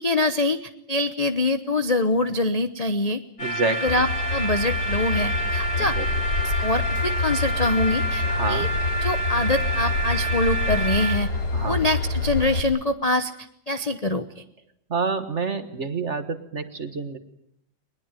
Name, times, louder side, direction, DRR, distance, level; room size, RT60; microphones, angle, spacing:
voice 1, 0.0-3.2 3.8-6.0 6.4-8.7 9.0-11.3 11.6-13.3 13.7-14.4, left 2 dB, 35° left, 8 dB, 0.6 m, -24 dB
sound 1, 3.4-11.2, right 1 dB, 70° left, 4.0 m, -28 dB
voice 2, 3.4-3.8 5.8-6.1 8.3-8.7 11.5-11.8 14.9-17.2, right 4 dB, 40° right, 10 dB, 1.6 m, -28 dB
Train / Engine, 3.9-12.6, left 3 dB, 50° left, 3.2 m, -27 dB
22.0 x 21.0 x 9.0 m, 0.72 s
omnidirectional pair, 2.2 m